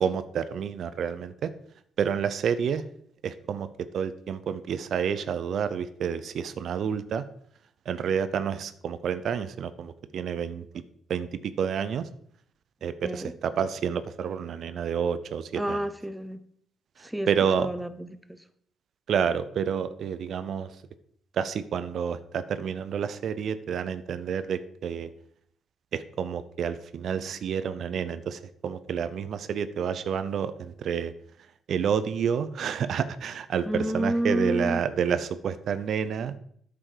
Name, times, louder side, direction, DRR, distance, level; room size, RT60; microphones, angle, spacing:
voice 1, 0.0-1.5 2.0-2.8 3.2-7.2 7.9-10.7 11.1-12.1 12.8-15.8 17.0-17.7 19.1-20.8 21.3-25.1 25.9-31.1 31.7-36.3, right 7 dB, 65° right, 13 dB, 0.6 m, -29 dB
voice 2, 13.0-13.3 15.5-16.4 17.0-17.3 17.6-18.4 33.7-34.8, equal, 5° right, 11 dB, 0.7 m, -30 dB
8.8 x 6.8 x 5.0 m, 0.64 s
cardioid pair, 90°, 0 cm